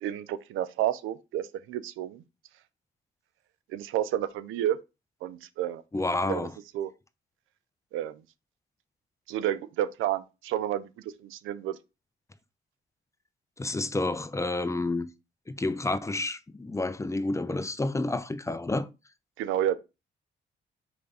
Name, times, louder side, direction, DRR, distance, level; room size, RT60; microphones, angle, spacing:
voice 1, 0.0-2.2 3.7-4.8 5.2-5.8 6.3-6.5 6.7-6.9 7.9-8.2 9.3-10.9 11.2-11.8 19.4-19.8, right 11 dB, 85° right, 0.6 m, -30 dB
voice 2, 5.9-6.5 13.6-15.1 15.5-18.9, left 2 dB, 15° left, 0.6 m, -29 dB
5.1 x 3.4 x 5.4 m
cardioid pair, 90°, 20 cm